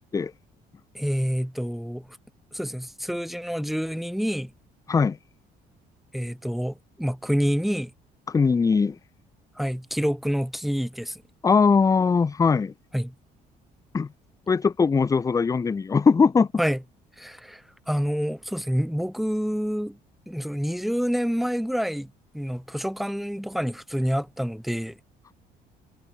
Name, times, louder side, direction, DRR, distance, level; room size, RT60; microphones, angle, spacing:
voice 1, 0.9-2.1 2.5-4.5 6.1-7.9 9.6-11.2 12.9-13.1 16.6-16.8 17.2-20.0 20.3-25.0, equal, ahead, 3.5 m, -27 dB
voice 2, 8.3-9.0 11.4-12.7 13.9-14.1 14.5-16.5, left 5 dB, 20° left, 0.5 m, -20 dB
cardioid pair, 110°, 17 cm